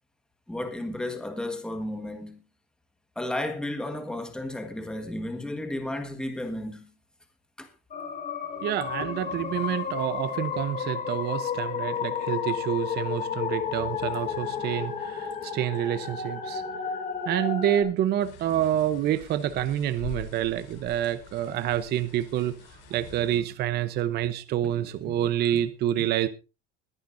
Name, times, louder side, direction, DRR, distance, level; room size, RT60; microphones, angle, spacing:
voice 1, 0.5-2.4 3.1-6.9 7.6-7.7 24.6-24.7 26.0-26.1, left 1 dB, 5° left, 1.4 m, -33 dB
sound 1, 7.9-17.8, left 7 dB, 25° left, 2.8 m, -32 dB
voice 2, 8.6-16.6 17.3-22.6 22.9-26.3, right 11 dB, 30° right, 0.8 m, -28 dB
sound 2, 18.2-23.4, left 6 dB, 50° left, 4.5 m, -45 dB
21.0 x 10.5 x 2.6 m
cardioid pair, 160°, 31 cm